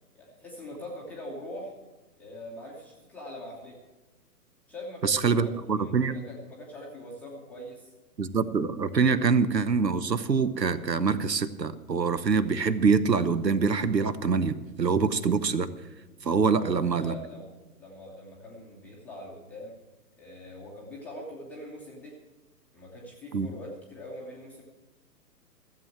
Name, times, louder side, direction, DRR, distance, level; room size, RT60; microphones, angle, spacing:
voice 1, 0.1-1.7 2.2-3.8 4.7-7.9 16.4-17.5 17.8-19.8 20.2-22.2 22.7-24.6, left 1 dB, 5° left, -5 dB, 0.8 m, -42 dB
voice 2, 5.0-6.1 8.2-15.7 16.2-17.2 23.3-23.5, right 5 dB, 80° right, 15 dB, 0.9 m, -25 dB
14.5 x 7.6 x 7.2 m, 1.1 s
figure-of-eight pair, 130°, 49 cm